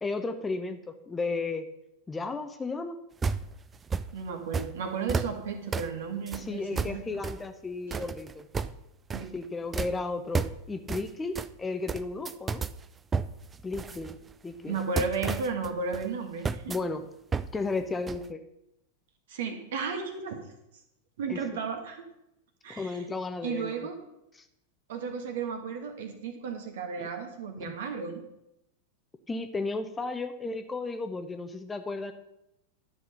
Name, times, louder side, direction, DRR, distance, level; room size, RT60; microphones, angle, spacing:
voice 1, 0.0-1.7 2.1-3.0 6.3-8.5 9.3-12.6 13.6-14.2 14.4-14.8 16.7-17.0 17.5-18.4 21.3-21.4 22.7-23.7 24.4-24.5 27.0-27.1 27.6-27.7 29.3-32.1, left 3 dB, 15° left, 8 dB, 0.8 m, -34 dB
sound 1, 3.2-4.1 4.5-4.7 5.1-5.4 5.7-5.9 6.3-6.5 6.8-7.5 7.9-8.8 9.1-9.4 9.7-10.0 10.3-10.6 10.9-11.1 11.4-11.5 11.9-12.8 13.1-14.3 14.8-16.1 16.5-16.8 17.3-17.5 17.8-17.9 18.1-18.3, right 5 dB, 15° right, 0.4 m, -32 dB
voice 2, 4.1-7.1 9.1-9.3 14.7-16.7 19.3-20.4 21.2-22.1 22.6-23.1 23.4-24.0 24.9-28.2, right 5 dB, 55° right, 6 dB, 1.7 m, -34 dB
12.0 x 5.9 x 6.7 m, 0.85 s
figure-of-eight pair, 90°, 0 cm